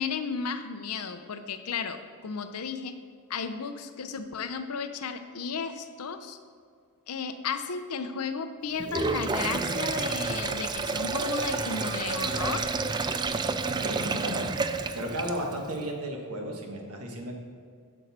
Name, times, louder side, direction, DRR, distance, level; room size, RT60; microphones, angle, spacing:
voice 1, 0.0-2.9 3.3-6.4 7.1-12.6, left 5 dB, 90° left, 9 dB, 0.7 m, -34 dB
Sink (filling or washing), 8.8-15.6, right 4 dB, 20° right, 0.3 m, -30 dB
sound 1, 10.7-12.4 12.8-12.9 13.3-13.4 13.8-13.9 14.9-15.0, right 2 dB, 70° right, 1.9 m, -45 dB
voice 2, 13.7-14.5 14.9-17.3, right 1 dB, 85° right, 1 dB, 1.5 m, -34 dB
11.0 x 6.4 x 4.2 m, 2.1 s
head